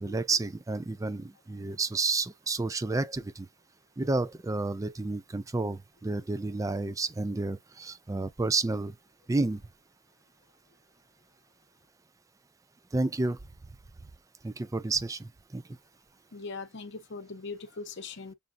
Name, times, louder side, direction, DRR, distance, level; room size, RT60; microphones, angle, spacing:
voice 1, 0.0-3.5 4.0-8.9 9.3-9.6 12.9-13.4 14.4-15.3 15.5-15.6, right 3 dB, 15° right, 0.3 m, -30 dB
voice 2, 16.3-18.3, left 4 dB, 55° left, 0.8 m, -40 dB
6.9 x 2.3 x 2.5 m
head